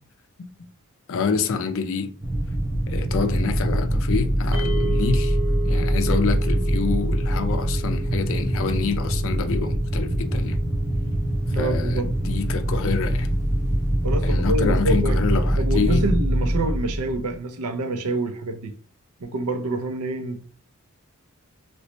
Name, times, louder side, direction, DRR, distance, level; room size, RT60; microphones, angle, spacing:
voice 1, 1.1-2.1 2.9-5.4 5.6-10.6 11.5-13.3 14.2-16.1, left 5 dB, 60° left, 0.5 m, -27 dB
sound 1, 2.2-17.3, right 1 dB, 10° right, 0.6 m, -23 dB
sound 2, 4.5-14.8, right 2 dB, 60° right, 0.8 m, -37 dB
voice 2, 11.5-12.1 14.0-15.2 15.6-18.7 19.2-20.5, right 2 dB, 90° right, 0.6 m, -27 dB
3.0 x 3.0 x 3.1 m
head